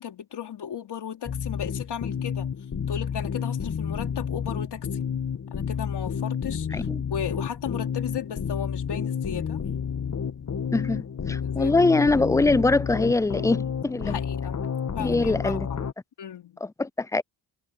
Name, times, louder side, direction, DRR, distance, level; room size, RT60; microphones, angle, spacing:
voice 1, 0.0-2.5 2.9-5.0 5.5-9.6 11.4-11.7 14.0-14.6 15.0-15.8 16.2-16.6, left 8 dB, 65° left, 3.7 m, -35 dB
sound 1, 1.3-15.9, left 7 dB, 40° left, 1.8 m, -30 dB
voice 2, 6.7-7.0 10.7-14.2 15.0-15.7 16.6-17.2, left 3 dB, 10° left, 0.3 m, -23 dB
cardioid pair, 80°, 43 cm